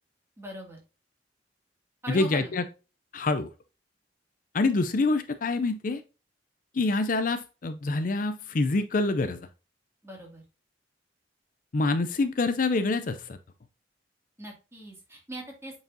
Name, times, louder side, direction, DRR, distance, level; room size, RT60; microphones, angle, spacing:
voice 1, 0.4-0.8 2.0-2.6 10.0-10.4 14.4-15.8, right 1 dB, 15° right, -1 dB, 2.3 m, -41 dB
voice 2, 2.1-2.6 3.1-3.5 4.5-6.0 6.7-9.5 11.7-13.4, left 3 dB, 45° left, 10 dB, 0.5 m, -26 dB
7.9 x 4.8 x 2.7 m, 0.32 s
head